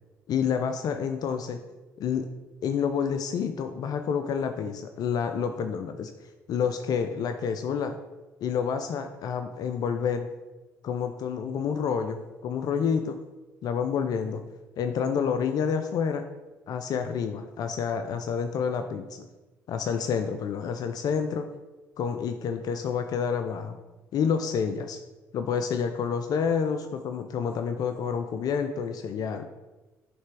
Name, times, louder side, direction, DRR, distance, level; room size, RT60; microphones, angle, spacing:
voice 1, 0.3-1.6 2.0-2.3 2.6-6.1 6.5-8.0 8.4-10.3 10.8-13.2 13.6-14.4 14.8-16.3 16.7-19.3 19.7-21.5 22.0-23.8 24.1-25.0 25.3-29.4, left 6 dB, 55° left, 7 dB, 0.4 m, -28 dB
7.3 x 3.4 x 4.7 m, 1.1 s
hypercardioid pair, 50°, 8 cm